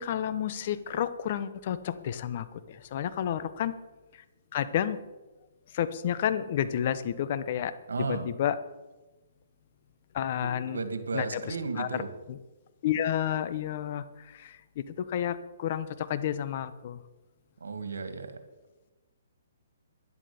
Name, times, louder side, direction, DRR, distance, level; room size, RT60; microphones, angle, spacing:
voice 1, 0.0-3.7 4.5-5.0 5.7-7.7 8.1-8.6 10.1-10.8 11.1-11.4 11.8-12.0 12.3-12.4 12.8-14.0 14.3-17.0, left 10 dB, 45° left, 13 dB, 1.0 m, -30 dB
voice 2, 7.9-8.3 10.4-12.1 17.6-18.3, right 4 dB, 85° right, 9 dB, 2.1 m, -34 dB
11.0 x 11.0 x 7.0 m, 1.1 s
hypercardioid pair, 150°, 0 cm